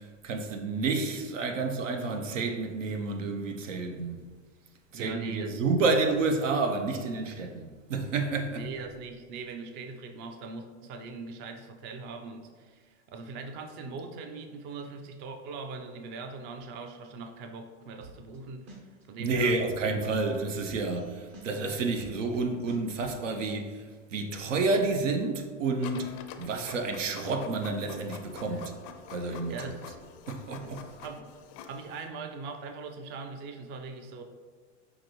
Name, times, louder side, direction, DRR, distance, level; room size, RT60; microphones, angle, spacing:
voice 1, 0.0-4.2 4.9-8.6 19.2-23.8 24.1-26.1 26.4-28.7 29.1-29.7 30.3-30.8, right 3 dB, 85° right, 0.7 m, -30 dB
voice 2, 4.9-5.5 8.5-18.8 19.1-20.0 28.5-28.6 29.5-29.8 30.6-31.3 31.7-34.2, right 4 dB, 30° right, 0.4 m, -41 dB
sound 1, 18.0-18.4 18.7-21.0 21.3-23.1, right 3 dB, 45° right, 1.0 m, -47 dB
Printer, 25.8-32.1, left 7 dB, 40° left, 0.4 m, -47 dB
5.7 x 2.6 x 3.0 m
hypercardioid pair, 105°, 38 cm